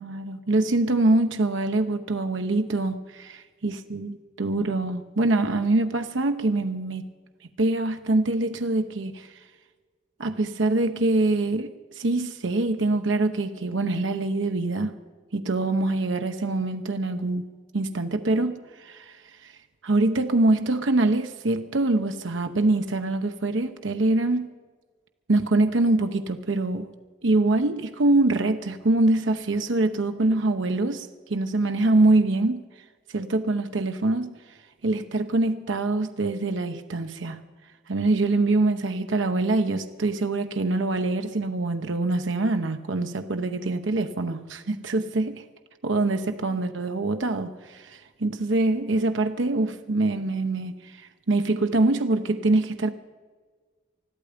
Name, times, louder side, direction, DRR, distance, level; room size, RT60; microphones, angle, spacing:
voice 1, 0.0-7.0 7.6-9.3 10.2-14.9 15.3-19.5 19.8-24.5 25.3-26.9 27.2-32.6 33.1-34.3 34.8-37.4 37.9-45.4 45.8-52.9, right 2 dB, 80° right, 0.9 m, -24 dB
20.5 x 14.0 x 5.1 m
head